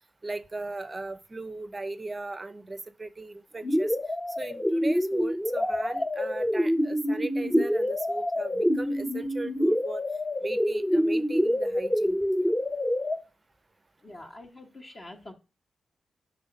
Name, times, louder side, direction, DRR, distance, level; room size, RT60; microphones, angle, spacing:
voice 1, 0.2-4.0 4.4-10.0 10.4-12.5, right 3 dB, 25° right, 0.5 m, -38 dB
sound 1, 3.6-13.2, equal, 15° left, 0.7 m, -26 dB
voice 2, 14.0-15.3, left 1 dB, 45° left, 1.3 m, -45 dB
5.6 x 3.7 x 5.1 m
cardioid pair, 90°, 0 cm